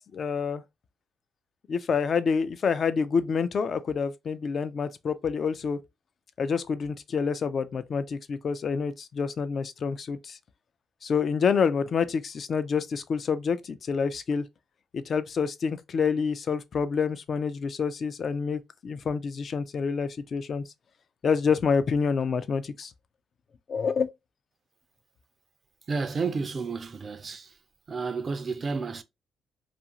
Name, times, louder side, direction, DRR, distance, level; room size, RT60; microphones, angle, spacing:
voice 1, 0.1-0.6 1.7-5.8 6.4-10.4 11.0-14.4 14.9-20.6 21.2-22.9 23.7-24.1, left 5 dB, 50° left, 0.3 m, -27 dB
voice 2, 25.9-27.6 27.9-29.0, right 4 dB, 40° right, 0.4 m, -31 dB
2.5 x 2.4 x 2.8 m
cardioid pair, 90°, 0 cm